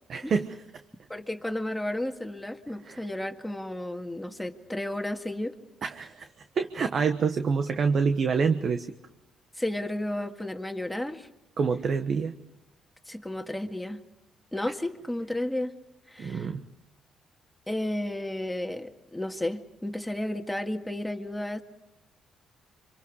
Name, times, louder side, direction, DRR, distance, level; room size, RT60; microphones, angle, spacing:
voice 1, 0.1-0.6 2.8-3.0 5.8-6.3 6.5-8.9 11.6-12.3 16.2-16.6, right 5 dB, 55° right, 8 dB, 1.2 m, -26 dB
voice 2, 1.1-5.6 9.6-11.3 13.1-14.0 14.5-15.7 16.1-16.5 17.7-21.6, left 1 dB, 5° left, 5 dB, 1.9 m, -32 dB
26.0 x 25.0 x 4.8 m, 0.95 s
cardioid pair, 90°, 0 cm